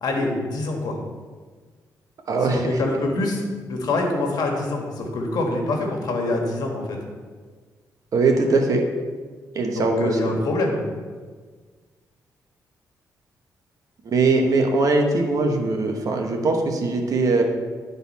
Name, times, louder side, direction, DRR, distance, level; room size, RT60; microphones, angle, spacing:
voice 1, 0.0-1.0 2.4-7.0 9.7-10.8, left 2 dB, 70° left, 1 dB, 1.4 m, -25 dB
voice 2, 2.3-2.7 8.1-8.8 9.5-10.2 14.0-17.4, right 3 dB, 60° right, 3 dB, 1.1 m, -21 dB
11.0 x 4.1 x 4.2 m, 1.5 s
cardioid pair, 95°, 7 cm